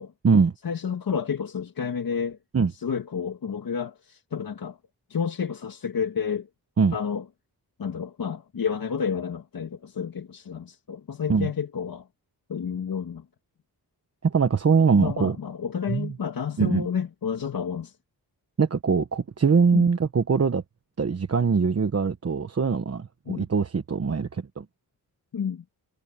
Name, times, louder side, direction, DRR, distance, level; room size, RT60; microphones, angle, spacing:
voice 1, 0.6-2.4 2.7-4.8 5.1-6.5 6.9-7.3 7.8-12.1 12.5-13.3 15.0-18.0 19.7-19.9 23.3-23.4 25.3-25.6, left 7 dB, 65° left, 2.0 m, -30 dB
voice 2, 14.2-15.4 15.9-16.1 16.6-16.9 18.6-20.6 21.0-24.6, right 5 dB, 40° right, 1.2 m, -22 dB
wide cardioid pair, 155°, 37 cm